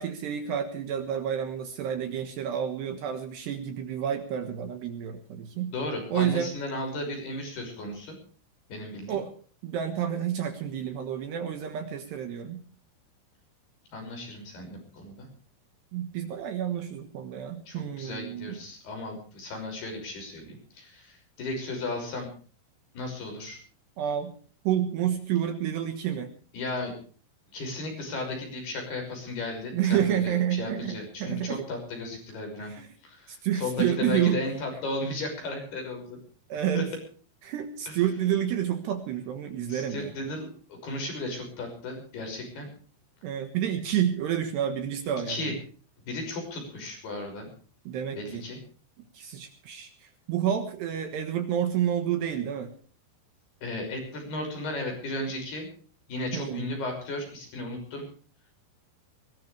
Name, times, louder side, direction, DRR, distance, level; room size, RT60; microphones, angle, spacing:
voice 1, 0.0-5.7 6.1-6.5 9.1-9.3 9.6-12.6 15.9-18.6 24.0-24.3 24.6-26.3 29.7-31.7 32.6-32.9 33.3-34.5 36.5-36.9 37.4-40.1 43.2-45.5 47.9-48.4 49.1-52.7 56.3-56.7, right 9 dB, 65° right, 7 dB, 3.1 m, -29 dB
voice 2, 5.7-8.2 8.7-9.2 13.9-15.3 17.7-22.3 22.9-23.6 26.5-26.9 27.5-32.7 33.0-36.2 36.7-36.8 37.9-38.0 39.7-42.7 45.3-45.5 46.1-47.5 48.1-48.6 53.6-55.7 56.1-58.1, left 2 dB, 50° left, 3 dB, 7.8 m, -35 dB
21.0 x 18.5 x 3.4 m, 0.42 s
omnidirectional pair, 5.8 m